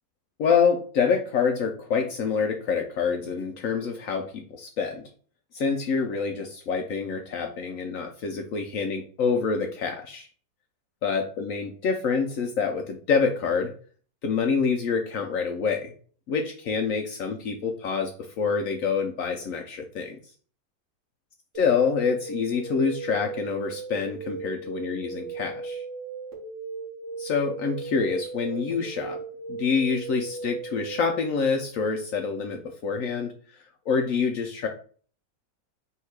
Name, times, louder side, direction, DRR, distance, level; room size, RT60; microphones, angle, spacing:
voice 1, 0.4-5.0 5.5-10.3 11.0-13.7 14.2-15.9 16.3-18.1 18.4-20.2 21.6-25.8 27.2-29.2 29.5-33.3 33.9-34.7, left 5 dB, 75° left, 3 dB, 0.7 m, -26 dB
sound 1, 21.5-31.1, right 4 dB, 45° right, 1.4 m, -37 dB
3.6 x 2.8 x 4.6 m, 0.43 s
omnidirectional pair, 2.0 m